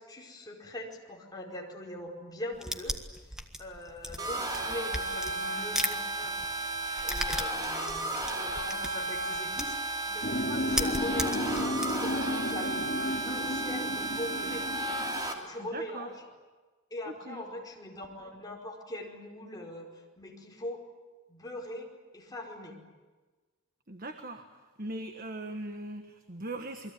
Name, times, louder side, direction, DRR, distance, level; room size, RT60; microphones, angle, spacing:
voice 1, 0.0-3.0 3.6-6.4 7.0-8.1 8.4-12.9 13.2-14.7 15.3-16.2 16.9-20.9 21.3-22.8, left 1 dB, 20° left, -1 dB, 4.8 m, -41 dB
sound 1, 2.5-6.0 6.2-9.9 10.2-10.3 10.6-12.1, equal, 5° right, 1.6 m, -35 dB
sound 2, 4.2-15.3, right 2 dB, 20° right, 3.1 m, -34 dB
sound 3, 10.2-15.2, left 1 dB, 45° left, 3.5 m, -33 dB
voice 2, 15.6-16.1 17.1-17.4 23.9-26.9, right 2 dB, 40° right, 6 dB, 1.5 m, -40 dB
28.5 x 22.0 x 9.5 m, 1.3 s
head